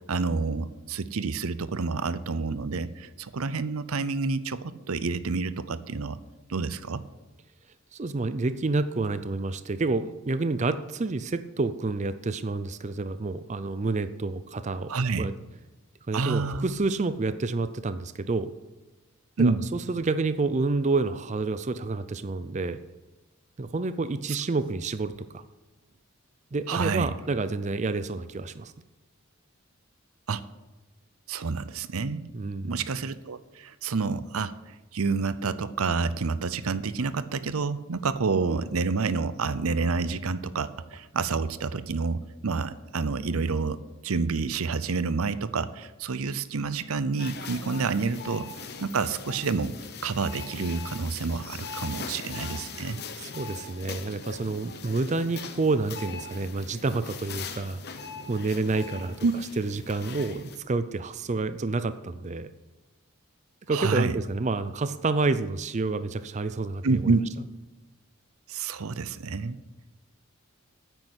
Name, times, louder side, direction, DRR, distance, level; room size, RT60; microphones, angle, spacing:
voice 1, 0.1-6.2 6.5-7.0 14.9-15.3 16.1-16.7 19.4-19.7 26.7-27.1 30.3-30.4 31.3-32.3 32.6-43.8 44.0-49.7 50.0-53.0 59.2-59.3 63.7-64.2 66.8-67.2 68.5-69.6, right 4 dB, 85° right, 15 dB, 0.7 m, -28 dB
voice 2, 7.9-15.3 16.1-18.5 19.4-22.8 23.6-25.4 26.5-28.7 32.3-32.8 53.2-57.8 58.3-59.1 59.6-62.5 63.7-67.0, right 3 dB, 35° right, 12 dB, 0.5 m, -29 dB
sound 1, 47.2-60.6, left 5 dB, 50° left, 1.1 m, -40 dB
9.7 x 9.0 x 8.1 m, 1.1 s
head